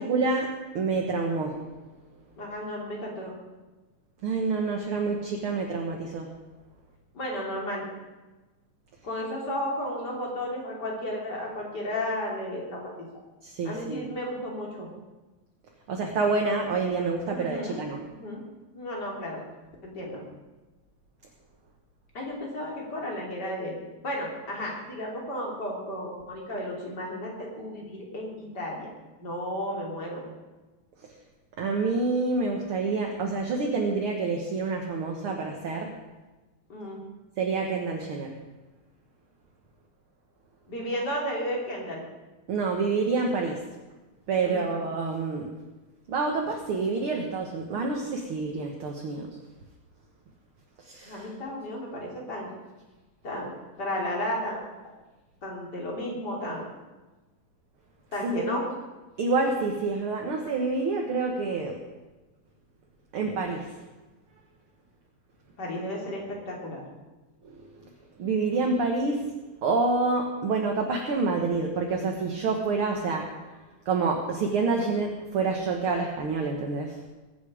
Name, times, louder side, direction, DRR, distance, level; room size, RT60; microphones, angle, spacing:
voice 1, 0.0-1.6 4.2-6.3 13.4-14.1 15.9-18.0 31.6-35.9 37.4-38.3 42.5-43.6 44.3-45.5 46.1-49.3 50.8-51.3 58.2-58.6 59.2-61.8 63.1-63.7 67.4-67.9 68.2-69.3 69.6-73.3 73.9-77.0, right 4 dB, 55° right, 1 dB, 1.7 m, -27 dB
voice 2, 2.4-3.3 7.1-7.8 9.0-12.9 13.6-14.9 17.3-17.8 18.1-18.4 18.7-19.4 19.8-20.2 22.1-23.7 24.0-28.9 29.2-30.2 36.7-37.0 40.7-42.0 44.4-44.8 51.1-52.5 53.2-53.5 53.8-54.9 55.4-56.6 58.1-58.6 65.6-66.8, left 1 dB, 30° left, -2 dB, 3.5 m, -33 dB
22.0 x 8.6 x 5.0 m, 1.2 s
omnidirectional pair, 3.8 m